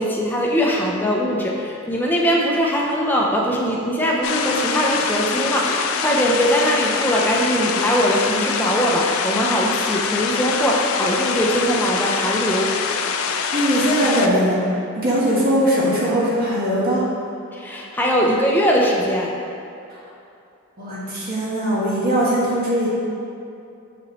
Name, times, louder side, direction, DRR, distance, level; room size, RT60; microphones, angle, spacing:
voice 1, 0.0-12.7 17.5-19.3, equal, 10° left, -2 dB, 0.7 m, -21 dB
sound 1, 4.2-14.3, left 6 dB, 70° left, 0.4 m, -24 dB
voice 2, 13.5-14.6 14.9-17.0 20.8-22.9, equal, 45° right, -7 dB, 1.3 m, -20 dB
6.2 x 5.7 x 3.1 m, 2.6 s
head